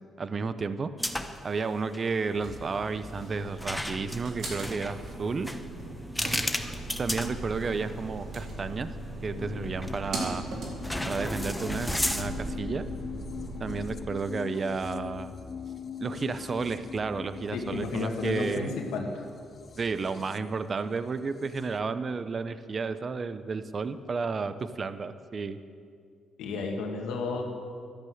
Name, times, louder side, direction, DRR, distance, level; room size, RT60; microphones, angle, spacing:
voice 1, 0.2-0.9 1.4-5.5 7.0-8.9 9.2-10.4 11.1-12.9 13.6-15.3 16.0-18.7 19.8-25.6, right 4 dB, 40° right, 12 dB, 0.7 m, -32 dB
sound 1, 1.0-1.5 1.8-2.0 3.6-8.0 8.5-8.6 9.8-10.2 10.8-12.6, equal, 5° left, 1.0 m, -34 dB
sound 2, 2.4-13.9, right 2 dB, 60° right, 3.9 m, -39 dB
sound 3, 9.3-21.8, left 7 dB, 45° left, 0.5 m, -42 dB
voice 2, 17.5-19.1 26.4-27.4, left 4 dB, 85° left, 2 dB, 2.0 m, -32 dB
12.5 x 11.5 x 7.9 m, 2.2 s
cardioid pair, 90°, 0 cm